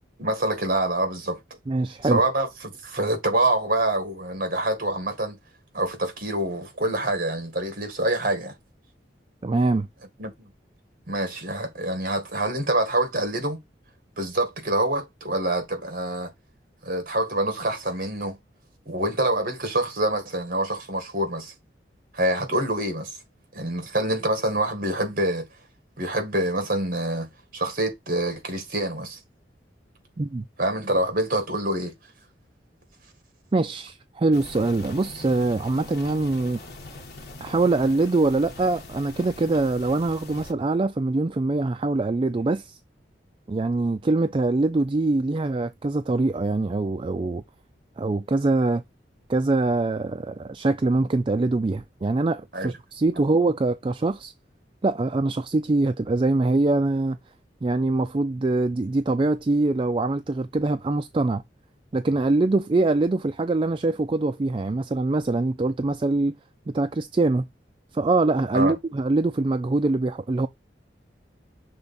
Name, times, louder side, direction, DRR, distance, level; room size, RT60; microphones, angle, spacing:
voice 1, 0.2-1.4 2.0-5.4 5.7-8.6 10.2-10.3 11.1-13.6 14.2-16.3 16.8-18.4 18.9-21.5 22.1-23.2 23.5-25.5 26.0-29.2 30.6-31.9 52.5-52.7 68.5-68.8, right 1 dB, 50° right, 1.8 m, -26 dB
voice 2, 1.7-2.2 9.4-9.9 30.2-30.4 33.5-36.6 37.4-42.8 43.5-47.4 48.0-48.8 49.3-54.3 54.8-57.2 57.6-61.4 61.9-66.3 66.7-67.4 67.9-70.5, right 2 dB, 30° right, 0.4 m, -23 dB
sound 1, 34.3-40.5, left 2 dB, 60° left, 1.4 m, -42 dB
6.6 x 3.5 x 4.0 m
head